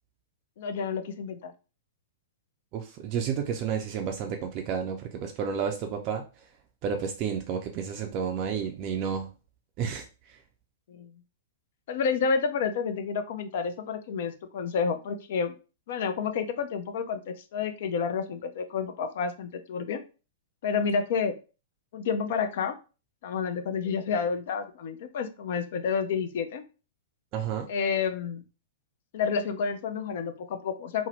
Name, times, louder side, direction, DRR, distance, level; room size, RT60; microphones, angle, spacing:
voice 1, 0.6-1.5 10.9-11.2 11.9-15.5 15.9-20.0 20.6-21.3 21.9-22.8 23.2-26.6 27.7-28.4 29.1-31.1, left 6 dB, 55° left, 9 dB, 0.4 m, -29 dB
voice 2, 2.7-6.5 6.8-9.3 9.8-10.4 27.3-27.7, right 7 dB, 35° right, 3 dB, 0.4 m, -31 dB
2.7 x 2.0 x 3.0 m, 0.33 s
figure-of-eight pair, 105°, 0 cm